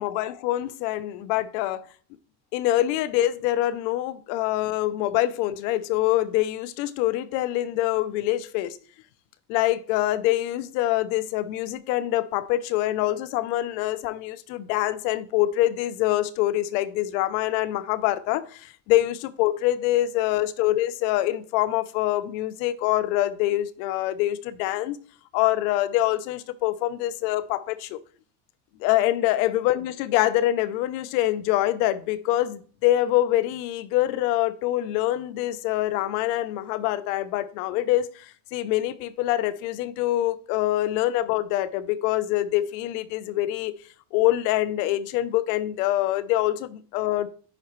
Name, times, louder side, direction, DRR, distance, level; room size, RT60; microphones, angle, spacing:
voice 1, 0.0-1.8 2.5-8.8 9.5-25.0 25.3-28.0 28.8-38.3 38.5-43.7 44.1-47.3, left 14 dB, 75° left, 0.8 m, -25 dB
10.0 x 4.1 x 3.2 m
supercardioid pair, 100°, 50 cm